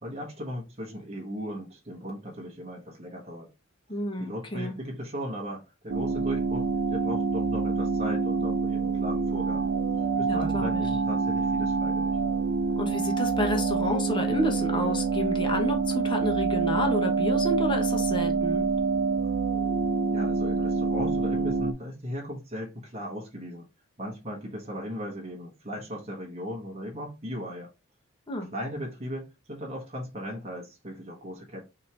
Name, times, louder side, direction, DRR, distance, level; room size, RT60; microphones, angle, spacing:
voice 1, 0.0-3.5 4.2-9.7 10.2-12.2 20.1-23.7 24.0-27.7 28.5-31.6, equal, 30° right, 1.1 m, -37 dB
voice 2, 3.9-4.7 10.3-10.8 12.8-18.6 28.3-28.5, left 1 dB, 25° left, 1.0 m, -30 dB
sound 1, 5.9-21.7, right 4 dB, 70° right, 0.5 m, -26 dB
4.3 x 2.9 x 3.3 m
head